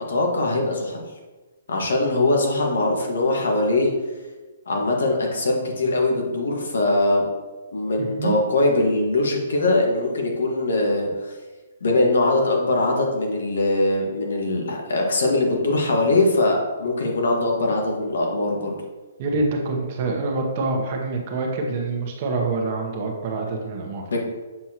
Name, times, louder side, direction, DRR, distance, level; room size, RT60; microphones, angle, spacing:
voice 1, 0.1-1.0 1.7-3.9 4.7-7.3 7.7-11.1 11.8-18.7 24.1-24.2, left 2 dB, 80° left, 0 dB, 1.6 m, -21 dB
voice 2, 19.2-24.1, right 3 dB, 35° right, 2 dB, 1.0 m, -26 dB
7.2 x 4.4 x 2.9 m, 1.2 s
hypercardioid pair, 160°, 0 cm